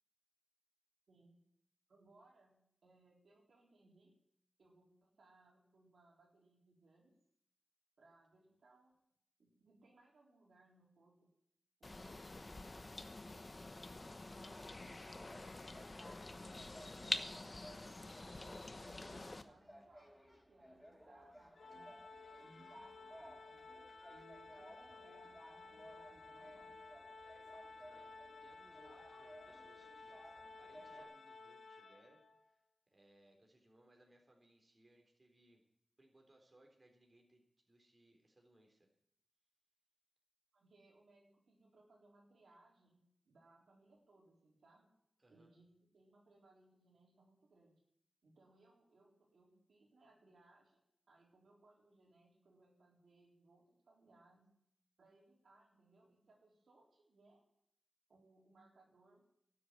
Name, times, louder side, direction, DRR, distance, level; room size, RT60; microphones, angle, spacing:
voice 1, 1.1-1.5 1.9-4.1 4.6-7.1 8.0-8.9 9.4-11.3 11.8-12.8 13.3-17.5 18.0-22.0 22.4-23.6 24.1-26.7 40.5-44.9 45.3-47.8 48.2-54.5 55.0-57.4 58.1-59.2, right 2 dB, 90° right, -2 dB, 3.8 m, -68 dB
sound 1, 11.8-19.4, left 2 dB, 40° left, 1.0 m, -46 dB
sound 2, 14.9-31.0, equal, 5° right, 5.4 m, -59 dB
Organ, 21.6-32.4, left 3 dB, 80° left, 1.3 m, -56 dB
voice 2, 27.8-32.2 32.5-32.6 32.9-35.6 36.0-38.9 45.2-45.5, right 1 dB, 35° right, 1 dB, 3.8 m, -68 dB
12.5 x 7.9 x 9.7 m, 0.73 s
wide cardioid pair, 65°, 0 cm